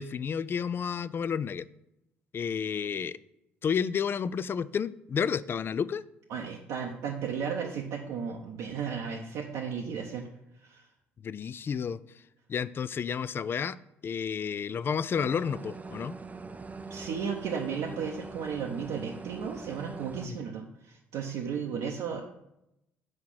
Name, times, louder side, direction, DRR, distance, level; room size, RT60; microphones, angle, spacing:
voice 1, 0.0-1.7 2.3-3.2 3.6-6.0 11.2-12.0 12.5-13.8 14.0-16.2 20.3-20.4, left 7 dB, 35° left, 17 dB, 0.3 m, -31 dB
voice 2, 6.3-10.3 10.6-10.8 16.9-22.2, right 6 dB, 60° right, -1 dB, 0.7 m, -34 dB
sound 1, 15.1-20.3, right 4 dB, 25° right, 0.6 m, -42 dB
6.4 x 4.7 x 5.7 m, 0.85 s
figure-of-eight pair, 50°, 6 cm